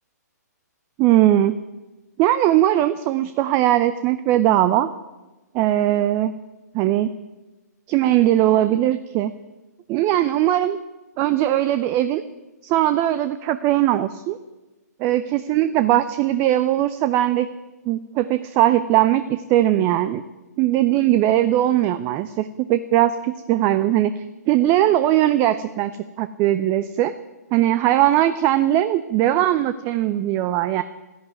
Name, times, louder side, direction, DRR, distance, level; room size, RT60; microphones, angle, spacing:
voice 1, 1.0-1.6 2.2-4.9 5.5-6.3 6.7-7.1 7.9-9.3 9.9-10.8 11.2-12.2 12.6-14.4 15.0-17.5 17.9-20.2 20.6-25.9 26.2-27.1 27.5-30.8, right 13 dB, 25° right, 13 dB, 0.5 m, -19 dB
13.5 x 11.0 x 9.3 m, 1.1 s
figure-of-eight pair, 130°, 10 cm